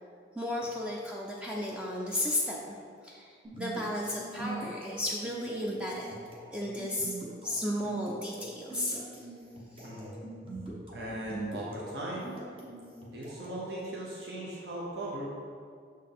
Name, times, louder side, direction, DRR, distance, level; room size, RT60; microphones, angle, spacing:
voice 1, 0.4-2.6 3.0-6.1 6.5-7.1 7.4-9.1, left 1 dB, 5° right, -3 dB, 0.4 m, -34 dB
sound 1, 3.4-13.7, right 2 dB, 30° right, 0.9 m, -43 dB
voice 2, 9.8-10.1 10.5-10.6 10.9-12.3 13.1-15.3, right 1 dB, 70° right, -4 dB, 0.9 m, -38 dB
6.4 x 4.5 x 3.5 m, 2.2 s
head